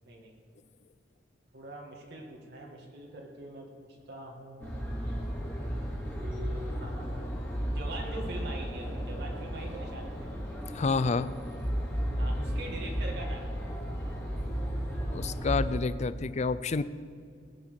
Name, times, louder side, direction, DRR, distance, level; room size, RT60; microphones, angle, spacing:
voice 1, 0.1-0.4 1.5-4.9 6.1-10.4 12.2-13.7, right 1 dB, 65° right, -1 dB, 2.0 m, -43 dB
sound 1, 4.6-15.8, equal, 10° left, 2.6 m, -34 dB
voice 2, 10.7-11.3 14.7-14.8 15.1-16.8, left 4 dB, 40° left, 15 dB, 0.4 m, -29 dB
20.0 x 8.7 x 5.8 m, 2.2 s
head